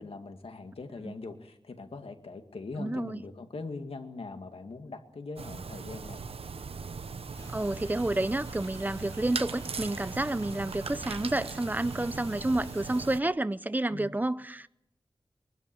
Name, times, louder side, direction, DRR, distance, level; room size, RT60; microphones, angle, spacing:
voice 1, 0.0-6.2 13.9-14.1, left 3 dB, 80° left, 2.2 m, -41 dB
voice 2, 2.8-3.2 7.5-14.7, right 2 dB, 20° right, 0.7 m, -30 dB
sound 1, 5.4-13.2, right 5 dB, 90° right, 0.8 m, -39 dB
sound 2, 7.3-13.1, left 1 dB, 30° left, 6.6 m, -49 dB
23.5 x 12.5 x 9.2 m
wide cardioid pair, 95°, 10 cm